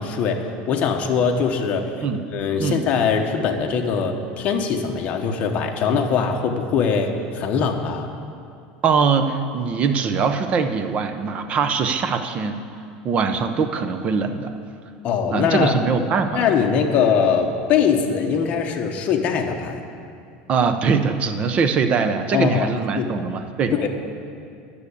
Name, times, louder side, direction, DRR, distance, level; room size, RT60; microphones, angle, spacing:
voice 1, 0.0-1.9 2.3-8.1 15.0-15.8 16.3-19.8 22.3-23.2 23.7-23.9, left 6 dB, 35° left, 2 dB, 1.0 m, -22 dB
voice 2, 8.8-12.6 13.0-14.5 15.3-16.4 20.5-23.9, right 5 dB, 30° right, 8 dB, 0.7 m, -22 dB
10.5 x 6.6 x 8.3 m, 2.5 s
supercardioid pair, 150°, 4 cm